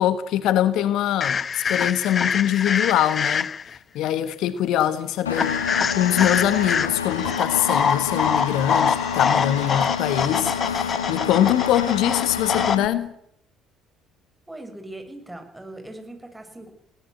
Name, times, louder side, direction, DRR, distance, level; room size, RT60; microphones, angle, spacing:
voice 1, 0.0-3.5 3.9-5.6 5.9-13.1, left 11 dB, 65° left, 1.3 m, -23 dB
sound 1, 1.2-3.8 5.3-12.8, left 6 dB, 40° left, 0.8 m, -25 dB
Engine, 5.3-12.9, left 7 dB, 90° left, 1.1 m, -29 dB
voice 2, 14.5-16.7, right 1 dB, 10° right, 6.8 m, -40 dB
22.0 x 18.0 x 8.1 m
hypercardioid pair, 55°, 0 cm